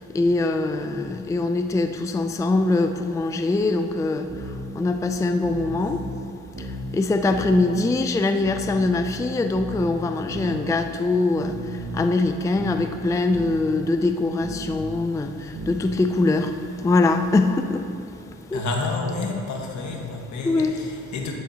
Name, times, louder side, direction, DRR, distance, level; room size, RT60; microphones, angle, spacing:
voice 1, 0.0-6.0 6.6-17.9 18.5-18.6 20.4-20.8, left 2 dB, 10° left, 7 dB, 0.4 m, -23 dB
sound 1, 4.3-4.6 5.4-6.1 6.5-6.9 7.3-7.6 8.4-9.1 9.5-9.9 10.3-10.6 11.4-12.1 12.5-12.9 13.3-13.6 14.4-15.1 15.5-15.9, right 1 dB, 45° right, 2.0 m, -34 dB
voice 2, 18.5-21.4, left 3 dB, 70° left, 1 dB, 1.6 m, -29 dB
12.0 x 10.0 x 2.9 m, 2.6 s
cardioid pair, 90°, 30 cm